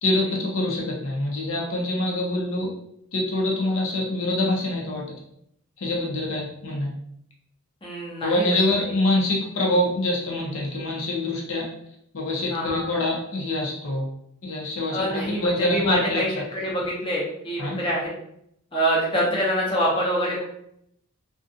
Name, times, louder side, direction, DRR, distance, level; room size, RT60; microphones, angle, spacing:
voice 1, 0.0-2.7 3.1-5.0 5.8-6.9 8.2-11.7 12.1-14.1 14.4-15.0 15.3-16.2 17.6-17.8, left 1 dB, 65° left, -2 dB, 0.6 m, -25 dB
voice 2, 7.8-8.4 12.5-12.8 14.9-18.1 18.7-20.5, equal, 25° left, -4 dB, 0.6 m, -25 dB
2.5 x 2.2 x 2.6 m, 0.73 s
head